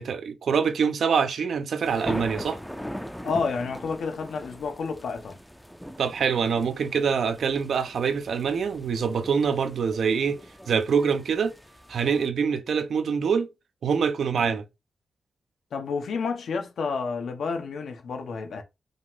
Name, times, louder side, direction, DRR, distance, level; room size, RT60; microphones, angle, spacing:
voice 1, 0.0-2.6 6.0-10.4 10.7-11.6 11.9-13.5 13.8-14.6, right 6 dB, 80° right, 0.6 m, -25 dB
sound 1, 1.8-12.3, equal, ahead, 0.5 m, -40 dB
voice 2, 3.2-5.4 14.3-14.4 15.7-18.6, left 5 dB, 85° left, 0.9 m, -30 dB
5.2 x 2.5 x 3.6 m
wide cardioid pair, 140°, 0 cm